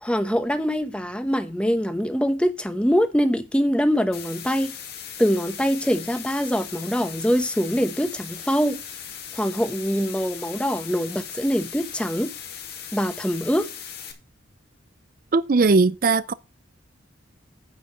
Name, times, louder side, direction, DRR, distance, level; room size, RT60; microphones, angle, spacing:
voice 1, 0.0-4.7 5.2-8.8 9.3-12.3 12.9-13.7, equal, 5° left, 0.9 m, -23 dB
sound 1, 4.1-14.1, left 8 dB, 50° left, 2.1 m, -38 dB
voice 2, 15.3-16.3, right 3 dB, 45° right, 0.4 m, -19 dB
9.4 x 4.7 x 7.2 m
head